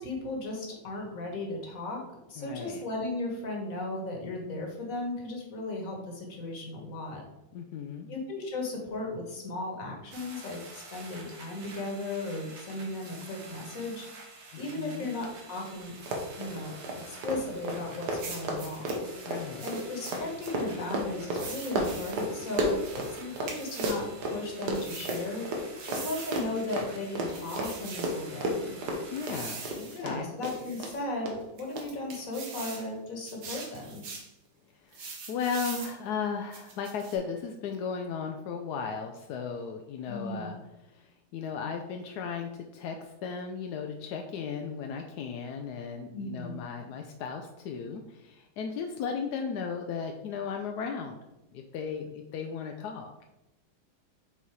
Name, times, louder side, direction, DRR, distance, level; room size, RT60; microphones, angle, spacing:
voice 1, 0.0-2.0 2.3-7.2 8.1-14.1 14.6-15.9 16.4-16.8 17.0-19.0 19.6-25.5 25.8-28.7 29.9-34.0 40.1-40.5 46.1-46.6, left 2 dB, 45° left, 0 dB, 1.6 m, -36 dB
voice 2, 2.4-2.8 7.5-8.1 14.5-15.1 19.2-19.6 29.1-30.3 34.9-40.6 40.9-51.2 51.5-53.1, left 6 dB, 75° left, 3 dB, 0.9 m, -36 dB
sound 1, 10.1-29.5, right 3 dB, 45° right, 1.1 m, -49 dB
Run, 15.2-15.3 15.6-15.7 16.0-23.5 23.8-30.1 30.4-30.9 31.3-31.4 31.8-31.9, right 1 dB, 60° right, 1.5 m, -32 dB
sound 2, 18.2-19.0 19.6-20.5 21.3-22.2 22.8-24.1 24.7-25.3 25.8-26.5 27.3-28.2 29.2-30.0 30.4-31.0 31.6-32.9 33.2-34.3 34.9-36.0 36.5-37.2, right 4 dB, 75° right, 1.9 m, -42 dB
5.7 x 4.1 x 4.6 m, 0.94 s
omnidirectional pair, 2.1 m